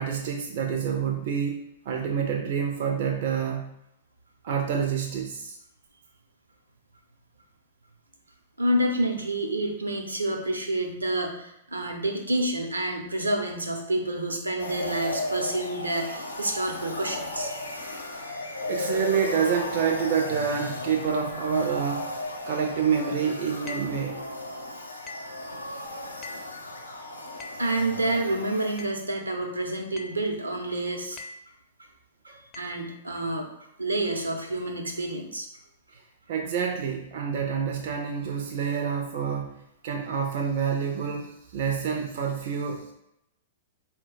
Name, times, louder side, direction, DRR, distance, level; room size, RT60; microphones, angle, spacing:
voice 1, 0.0-3.7 4.4-5.6 18.3-22.1 22.4-24.2 32.3-32.4 36.3-42.9, right 7 dB, 55° right, 2 dB, 0.5 m, -28 dB
voice 2, 8.6-17.5 27.6-31.2 32.6-33.5 33.8-35.5, right 1 dB, 85° right, 2 dB, 0.8 m, -28 dB
sound 1, 14.6-28.8, left 2 dB, 85° left, 0.7 m, -35 dB
sound 2, 23.7-24.0 25.1-25.4 26.2-26.6 27.4-27.7 28.8-29.1 30.0-30.3 31.2-31.5 32.5-32.8, left 2 dB, 30° left, 0.6 m, -42 dB
4.3 x 2.2 x 3.8 m, 0.82 s
figure-of-eight pair, 105°, 0 cm